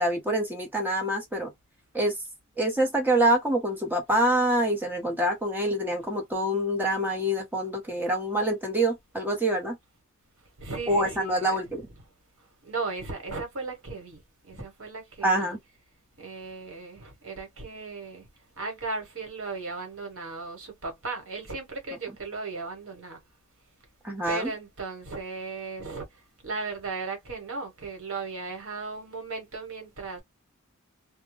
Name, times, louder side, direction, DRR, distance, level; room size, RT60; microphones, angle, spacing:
voice 1, 0.0-1.5 1.9-2.2 2.6-9.8 10.9-11.8 15.2-15.6 24.0-24.5, right 1 dB, 10° right, 0.8 m, -26 dB
voice 2, 10.6-11.6 12.6-15.5 16.2-18.3 18.6-23.2 24.3-30.2, right 3 dB, 70° right, 1.1 m, -36 dB
2.2 x 2.1 x 3.1 m
head